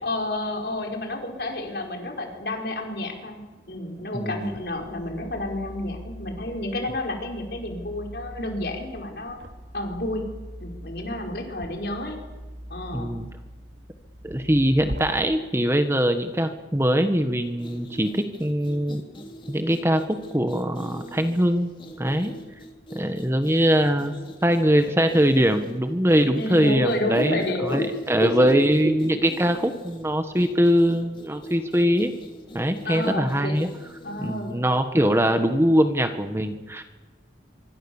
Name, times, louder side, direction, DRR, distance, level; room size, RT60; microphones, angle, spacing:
voice 1, 0.0-3.4 3.7-9.4 9.7-10.2 10.6-12.2 12.7-13.1 26.3-28.6 32.8-33.6 34.0-34.6, left 1 dB, 60° left, 2 dB, 5.2 m, -30 dB
voice 2, 4.1-4.5 12.9-13.3 14.2-19.0 19.5-21.7 22.0-22.3 22.9-24.1 24.4-32.1 32.5-33.7 34.2-36.8, equal, 15° right, 7 dB, 1.4 m, -22 dB
sound 1, 4.4-15.0, equal, 80° right, 3.1 m, -41 dB
sound 2, 17.5-34.6, equal, 25° left, 3.1 m, -44 dB
25.5 x 24.5 x 7.3 m, 1.2 s
head